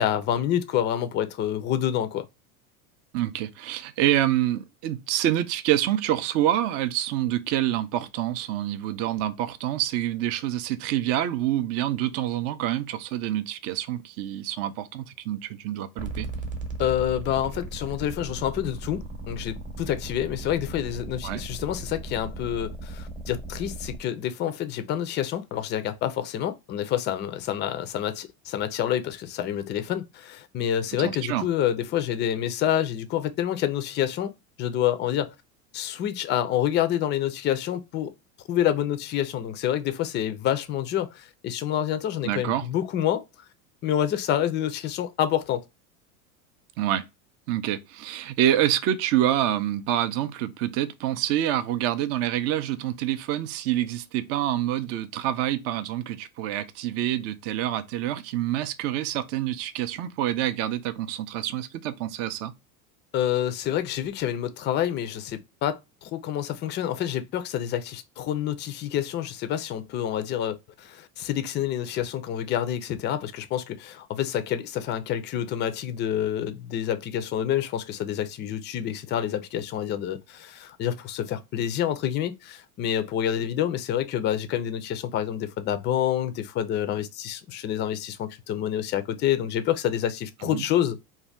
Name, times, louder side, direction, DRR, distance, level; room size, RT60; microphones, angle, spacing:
voice 1, 0.0-2.3 16.8-34.3 34.6-35.3 35.7-38.1 38.5-43.2 43.8-45.6 63.1-91.0, left 10 dB, 25° left, 0.4 m, -28 dB
voice 2, 3.1-16.3 21.2-21.4 31.0-31.4 42.2-42.7 46.8-47.1 47.5-62.5 90.5-90.6, right 12 dB, 40° right, 0.4 m, -27 dB
sound 1, 16.0-24.0, right 2 dB, 20° right, 0.8 m, -37 dB
2.6 x 2.2 x 3.1 m
hypercardioid pair, 110°, 42 cm